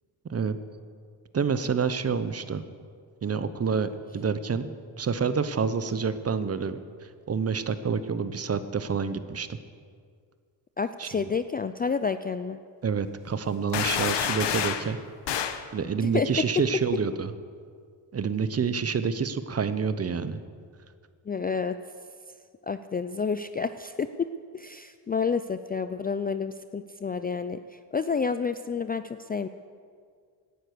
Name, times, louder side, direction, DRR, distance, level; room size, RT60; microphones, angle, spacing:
voice 1, 1.3-2.6 3.2-4.7 5.0-9.6 11.0-11.2 12.8-15.0 15.7-17.3 18.1-20.4, right 6 dB, 35° right, 12 dB, 0.8 m, -28 dB
voice 2, 10.8-12.6 16.0-16.3 21.3-21.8 22.6-24.1 24.5-29.5, left 5 dB, 25° left, 11 dB, 0.3 m, -29 dB
sound 1, 13.7-14.9 15.3-15.6, left 9 dB, 65° left, 1.1 m, -28 dB
17.5 x 9.9 x 6.7 m, 2.1 s
cardioid pair, 110°, 45 cm